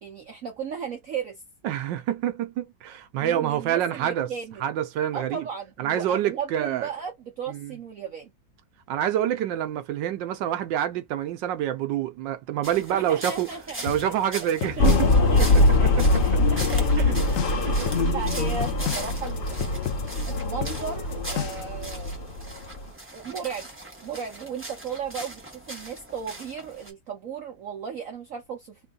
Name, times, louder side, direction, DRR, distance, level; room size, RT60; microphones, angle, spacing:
voice 1, 0.0-1.4 3.2-4.6 5.1-8.3 12.9-14.5 14.8-14.9 15.3-15.9 16.2-17.1 17.5-17.7 18.0-22.3 23.1-23.7 24.0-28.8, right 7 dB, 55° right, 1.0 m, -36 dB
voice 2, 1.6-4.3 4.6-5.5 5.8-6.9 7.5-7.8 8.9-13.5 13.8-15.1 15.4-16.2 17.0-17.1 17.7-18.1, right 11 dB, 80° right, 1.4 m, -27 dB
sound 1, 12.6-26.9, right 1 dB, 10° right, 0.5 m, -40 dB
sound 2, 13.9-21.8, left 10 dB, 85° left, 0.7 m, -33 dB
sound 3, 14.8-22.8, left 2 dB, 45° left, 0.7 m, -23 dB
3.5 x 2.2 x 3.8 m
omnidirectional pair, 2.0 m